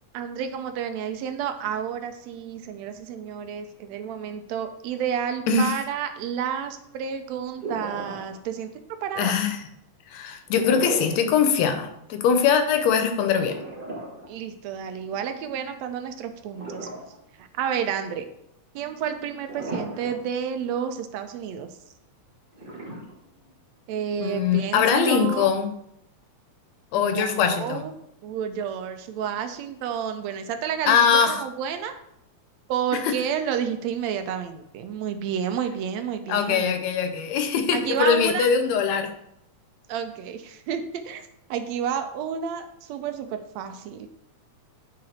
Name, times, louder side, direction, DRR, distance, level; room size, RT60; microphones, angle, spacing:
voice 1, 0.1-8.7 9.0-9.4 14.3-16.9 17.4-18.3 18.8-21.7 23.9-25.5 26.9-27.9 28.2-31.9 32.7-36.7 37.7-38.5 39.9-44.1, right 8 dB, 75° right, 7 dB, 1.7 m, -30 dB
sound 1, 7.6-8.6 10.5-11.3 11.7-11.8 13.5-15.0 16.5-17.4 17.8-17.9 19.4-20.4 20.7-20.8 22.5-23.6, right 2 dB, 35° right, 0.8 m, -36 dB
voice 2, 9.2-9.6 10.1-13.6 24.2-25.7 26.9-27.8 30.9-31.4 33.0-33.2 36.3-39.1, left 6 dB, 75° left, 8 dB, 1.9 m, -22 dB
9.2 x 3.8 x 4.2 m, 0.77 s
omnidirectional pair, 3.3 m